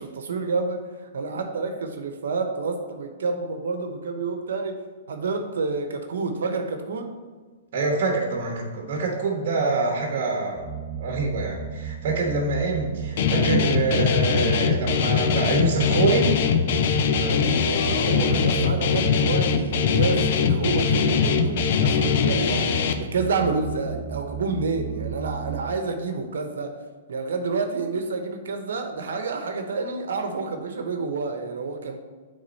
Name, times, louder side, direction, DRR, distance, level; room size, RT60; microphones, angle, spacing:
voice 1, 0.0-4.8 5.1-7.1 17.1-26.8 27.1-32.0, right 4 dB, 80° right, 6 dB, 0.9 m, -29 dB
voice 2, 7.7-10.7 11.0-16.3, right 3 dB, 55° right, 0 dB, 1.2 m, -25 dB
sound 1, 10.5-25.7, right 6 dB, 15° right, 0.9 m, -34 dB
Guitar, 13.2-22.9, left 6 dB, 55° left, 0.6 m, -22 dB
8.7 x 3.7 x 4.1 m, 1.5 s
hypercardioid pair, 145°, 0 cm